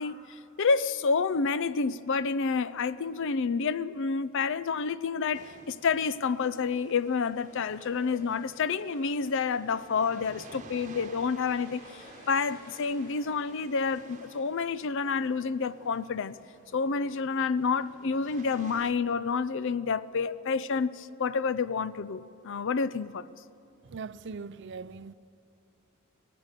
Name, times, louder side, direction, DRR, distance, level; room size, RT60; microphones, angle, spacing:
voice 1, 0.0-16.4 16.7-23.3, left 5 dB, 60° left, 0.5 m, -29 dB
sound 1, 5.3-18.9, right 3 dB, 35° right, 1.1 m, -54 dB
sound 2, 7.0-18.9, left 2 dB, 45° left, 2.9 m, -57 dB
voice 2, 23.8-25.1, right 4 dB, 55° right, 0.5 m, -40 dB
25.0 x 17.5 x 6.7 m
head